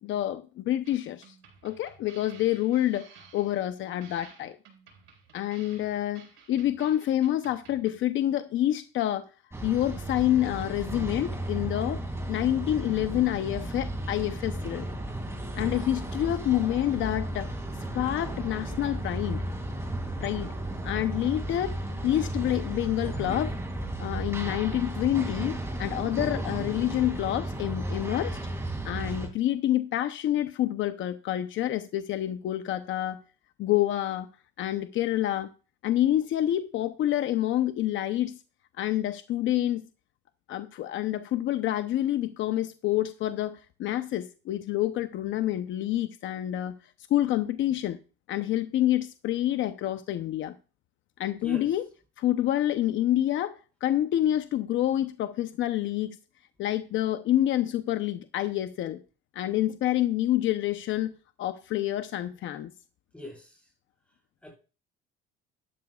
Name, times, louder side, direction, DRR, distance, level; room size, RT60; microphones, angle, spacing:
voice 1, 0.0-1.3 1.6-4.6 5.3-9.3 9.6-12.0 12.3-14.9 15.6-17.5 17.9-19.4 20.2-20.5 20.8-21.8 22.0-23.6 24.0-28.4 28.8-33.2 33.6-34.3 34.6-35.5 35.8-38.4 38.8-39.8 40.5-46.8 47.1-48.0 48.3-50.5 51.2-51.9 52.2-56.2 56.6-59.0 59.3-61.1 61.4-62.7, left 13 dB, 65° left, 0.8 m, -27 dB
sound 1, 0.8-8.0, right 6 dB, 85° right, 4.4 m, -54 dB
sound 2, 9.5-29.3, right 1 dB, 15° right, 2.4 m, -34 dB
voice 2, 63.1-63.6 64.4-64.5, equal, 5° left, 5.1 m, -41 dB
12.0 x 11.5 x 2.4 m
cardioid pair, 125°, 21 cm